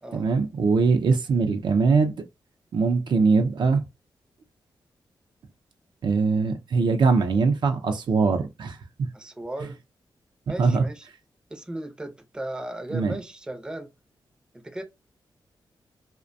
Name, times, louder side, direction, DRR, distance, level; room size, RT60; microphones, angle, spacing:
voice 1, 0.1-2.1 2.7-3.8 6.0-9.1 10.6-10.8 12.9-13.1, right 4 dB, 65° right, 0.5 m, -22 dB
voice 2, 9.1-9.8 10.5-11.1 11.5-13.9 14.5-14.8, right 1 dB, 10° right, 0.5 m, -36 dB
2.5 x 2.1 x 2.5 m
wide cardioid pair, 110°, 8 cm